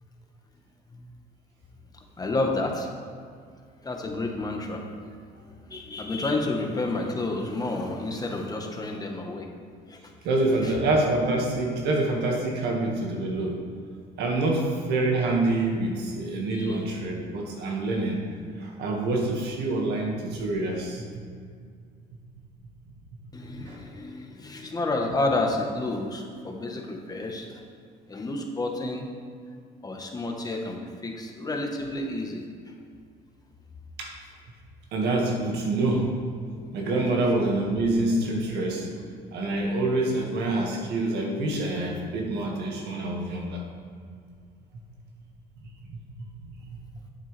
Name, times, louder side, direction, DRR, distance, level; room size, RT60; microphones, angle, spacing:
voice 1, 2.2-2.9 3.8-5.1 5.5-9.5 9.9-10.1 10.6-10.7 16.5-16.8 23.3-27.6 28.1-29.1 29.8-32.4, left 2 dB, 20° left, 1 dB, 1.3 m, -30 dB
voice 2, 10.2-13.6 14.2-18.2 18.6-21.2 23.6-23.8 34.0-34.1 34.9-36.1 36.7-38.9 39.3-43.6 45.9-46.0, right 2 dB, 75° right, 0 dB, 1.9 m, -26 dB
11.0 x 8.7 x 3.4 m, 2.1 s
cardioid pair, 110°, 17 cm